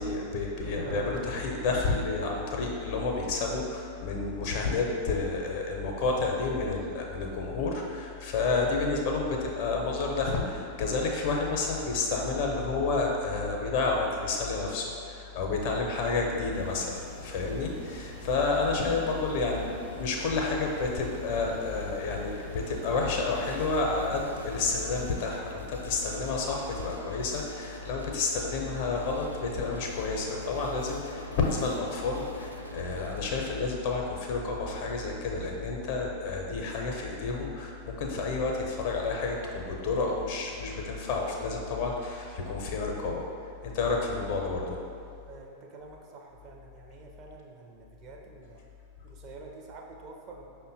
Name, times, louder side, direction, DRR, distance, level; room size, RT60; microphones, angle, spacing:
voice 1, 0.0-43.3 43.6-44.8, left 3 dB, 50° left, 0 dB, 0.6 m, -30 dB
Thunder, 0.6-16.7 17.0-17.1 17.4-17.5 17.8-18.2, right 2 dB, 60° right, 1.0 m, -51 dB
sound 1, 16.5-25.1, equal, 85° right, 0.8 m, -45 dB
sound 2, 23.3-33.3, equal, 90° left, 0.3 m, -44 dB
voice 2, 45.2-48.7 49.0-50.7, right 3 dB, 35° right, 0 dB, 0.5 m, -48 dB
5.3 x 2.1 x 3.9 m, 2.5 s
figure-of-eight pair, 90°, 0 cm